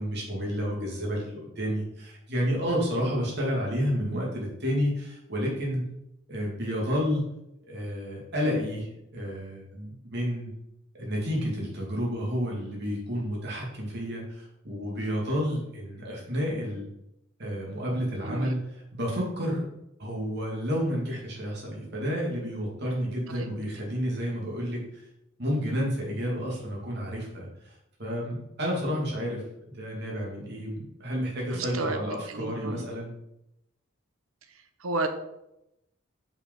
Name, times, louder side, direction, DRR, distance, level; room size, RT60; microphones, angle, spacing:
voice 1, 0.0-5.8 6.3-7.3 7.7-10.5 10.9-16.9 17.4-18.6 18.9-19.6 20.0-25.0 25.4-33.1, equal, 55° right, -3 dB, 2.7 m, -30 dB
voice 2, 18.2-18.5 23.3-23.5 31.5-32.0 32.3-32.9 34.5-35.1, right 3 dB, 90° right, 8 dB, 1.0 m, -32 dB
6.9 x 5.2 x 5.4 m, 0.86 s
head